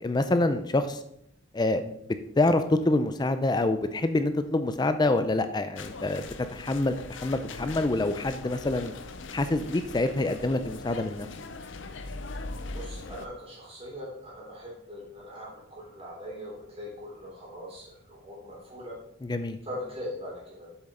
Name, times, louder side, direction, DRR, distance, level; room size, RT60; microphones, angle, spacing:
voice 1, 0.0-1.0 1.5-1.9 2.4-8.9 9.3-11.3 19.2-19.6, left 2 dB, 20° left, 10 dB, 0.4 m, -26 dB
sound 1, 5.8-13.3, left 3 dB, 65° left, 0.6 m, -40 dB
voice 2, 12.7-18.9 19.6-20.7, left 1 dB, 30° right, -4 dB, 3.5 m, -41 dB
7.6 x 7.2 x 3.8 m, 0.75 s
head